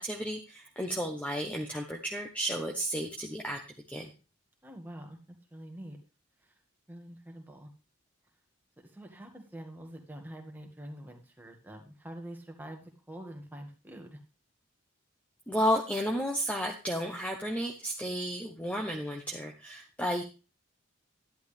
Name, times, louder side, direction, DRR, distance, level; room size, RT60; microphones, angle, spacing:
voice 1, 0.0-3.6 3.9-4.1 15.5-20.2, equal, 5° left, 1 dB, 1.0 m, -32 dB
voice 2, 4.6-5.2 5.5-6.0 6.4-6.6 6.9-7.7 8.8-14.2, right 1 dB, 10° right, 2 dB, 1.9 m, -46 dB
11.0 x 11.0 x 3.4 m, 0.32 s
head